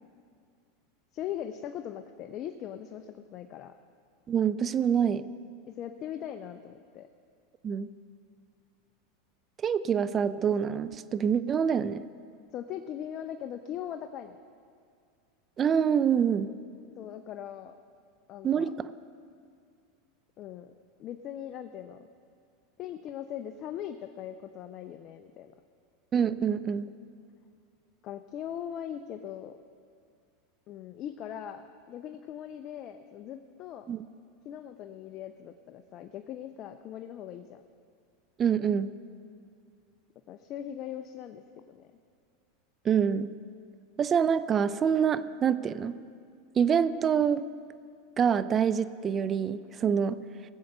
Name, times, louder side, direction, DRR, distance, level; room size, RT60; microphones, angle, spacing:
voice 1, 1.1-3.7 5.7-7.1 12.5-14.4 17.0-17.8 18.3-18.7 20.4-20.7 21.0-22.0 22.8-25.5 28.0-29.6 30.7-33.9 34.4-37.6 40.3-41.4 41.7-41.9, left 10 dB, 45° left, 8 dB, 0.6 m, -40 dB
voice 2, 4.3-5.2 7.6-7.9 9.6-12.0 15.6-16.5 18.4-18.9 26.1-26.9 33.9-34.0 38.4-38.9 42.8-43.3 44.0-46.0 46.6-47.5 48.2-50.2, right 7 dB, 30° right, 14 dB, 0.5 m, -26 dB
19.0 x 7.9 x 5.5 m, 2.3 s
hypercardioid pair, 105°, 0 cm